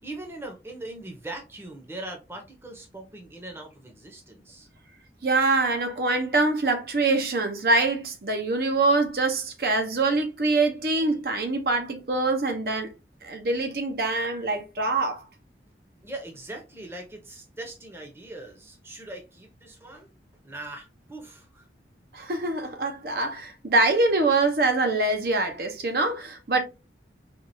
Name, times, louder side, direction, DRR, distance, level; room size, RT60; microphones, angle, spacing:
voice 1, 0.0-4.7 16.0-20.1 20.4-21.7, right 2 dB, 15° right, 0.7 m, -40 dB
voice 2, 5.2-12.9 13.2-15.2 22.1-26.6, right 3 dB, 55° right, 0.7 m, -24 dB
4.4 x 2.3 x 2.6 m
head